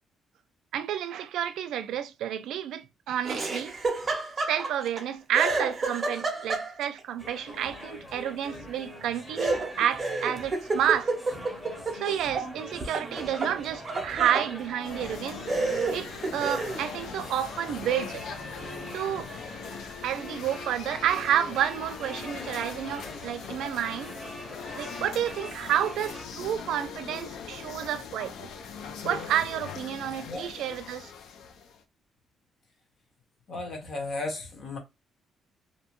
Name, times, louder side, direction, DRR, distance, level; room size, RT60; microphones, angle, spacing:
voice 1, 0.7-3.7 4.5-11.1 11.9-15.4 15.9-18.2 18.9-19.3 20.0-24.1 24.8-28.5 29.0-31.1, right 10 dB, 80° right, 0.3 m, -30 dB
Laughter, 3.2-5.0 5.3-7.0 9.4-12.5 12.8-14.5 15.1-15.2 15.5-16.8, right 3 dB, 25° right, 0.6 m, -30 dB
sound 1, 7.2-26.3, left 1 dB, 10° left, 0.8 m, -43 dB
sound 2, 14.8-31.8, left 6 dB, 80° left, 0.4 m, -41 dB
voice 2, 33.5-34.8, left 2 dB, 40° left, 0.9 m, -35 dB
2.6 x 2.2 x 2.9 m
cardioid pair, 170°, 0 cm